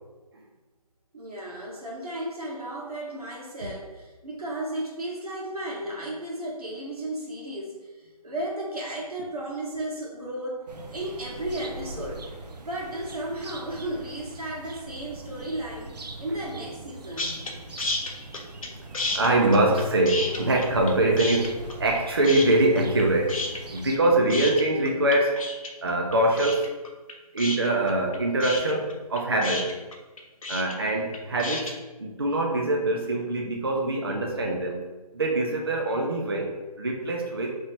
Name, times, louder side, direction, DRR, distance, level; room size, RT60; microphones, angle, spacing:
voice 1, 1.1-12.3 12.5-15.9 16.2-17.3 18.7-18.8, right 1 dB, 65° right, -3 dB, 1.4 m, -34 dB
sound 1, 10.7-24.0, right 2 dB, 85° right, 0.6 m, -42 dB
sound 2, 17.2-17.5 17.8-18.7 18.9-20.9 21.2-22.0 22.2-23.0 23.3-31.7, left 2 dB, 55° left, 0.6 m, -31 dB
voice 2, 19.1-23.4 23.7-25.4 25.8-26.7 27.3-29.7 30.5-34.8 35.1-37.6, right 2 dB, 40° right, 0 dB, 0.4 m, -24 dB
3.0 x 3.0 x 4.1 m, 1.2 s
figure-of-eight pair, 170°, 20 cm